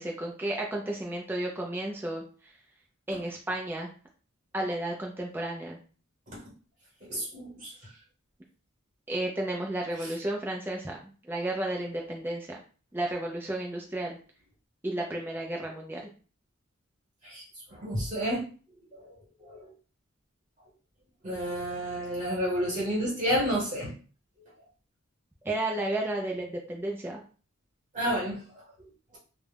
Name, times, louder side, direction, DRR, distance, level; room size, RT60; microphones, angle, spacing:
voice 1, 0.0-2.2 3.1-3.9 4.5-5.8 9.1-12.6 12.9-14.2 14.8-16.1 25.5-27.2, right 1 dB, 10° right, -1 dB, 0.3 m, -32 dB
voice 2, 7.1-7.7 17.2-17.4 17.8-18.4 19.4-19.6 21.2-23.9 27.9-28.4, equal, 35° right, -4 dB, 1.1 m, -30 dB
2.3 x 2.0 x 3.3 m, 0.38 s
head